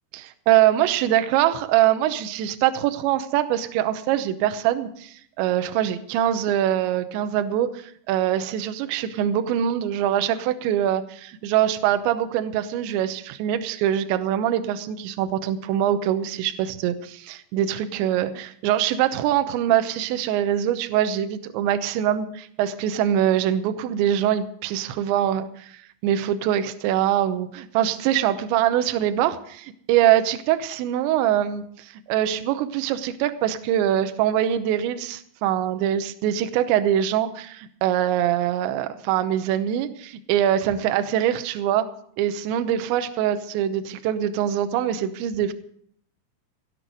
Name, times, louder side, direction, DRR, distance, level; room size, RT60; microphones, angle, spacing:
voice 1, 0.1-41.9 42.2-45.5, right 11 dB, 80° right, 9 dB, 2.9 m, -23 dB
17.5 x 8.4 x 6.5 m, 0.64 s
omnidirectional pair, 5.7 m